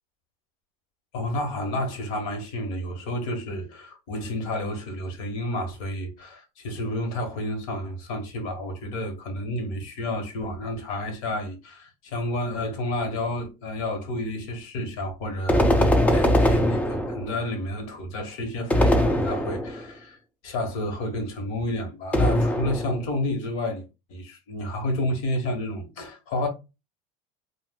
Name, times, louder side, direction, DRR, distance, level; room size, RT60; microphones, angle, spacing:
voice 1, 1.1-20.2 20.4-23.8 24.1-26.5, left 1 dB, 70° left, 1.3 m, -30 dB
sound 1, 15.5-17.4 18.7-19.9 22.1-23.1, left 1 dB, 10° left, 0.3 m, -21 dB
2.4 x 2.3 x 3.6 m
cardioid pair, 150°, 18 cm